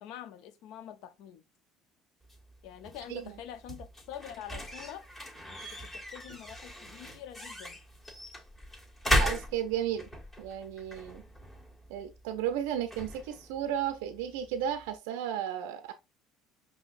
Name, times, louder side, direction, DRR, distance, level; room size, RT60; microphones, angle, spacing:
voice 1, 0.0-1.4 2.6-5.1 5.5-7.8, left 10 dB, 70° left, 0.5 m, -46 dB
sound 1, 2.2-15.0, equal, 25° left, 1.5 m, -37 dB
voice 2, 9.1-10.1 10.4-11.2 11.9-15.9, right 10 dB, 85° right, 0.4 m, -34 dB
5.3 x 2.8 x 2.4 m
supercardioid pair, 90°, 0 cm